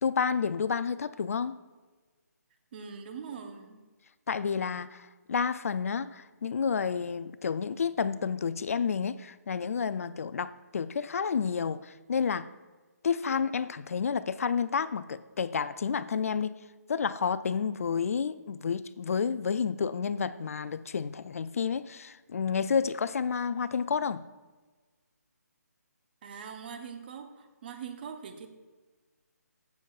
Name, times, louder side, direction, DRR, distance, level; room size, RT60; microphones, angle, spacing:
voice 1, 0.0-1.6 4.3-12.5 13.0-16.6 16.9-24.2, left 6 dB, 55° left, 15 dB, 0.4 m, -30 dB
voice 2, 2.7-3.8 26.2-28.5, right 6 dB, 35° right, 6 dB, 0.8 m, -42 dB
16.0 x 6.9 x 2.4 m, 1.3 s
hypercardioid pair, 155°, 9 cm